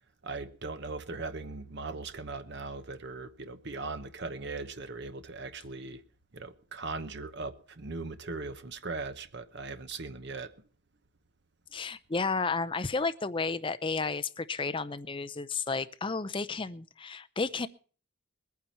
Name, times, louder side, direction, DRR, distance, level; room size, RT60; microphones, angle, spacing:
voice 1, 0.2-6.0 6.3-10.5, right 3 dB, 55° right, 1.0 m, -39 dB
voice 2, 11.7-17.7, left 4 dB, 25° left, 0.6 m, -32 dB
21.0 x 9.4 x 4.4 m
head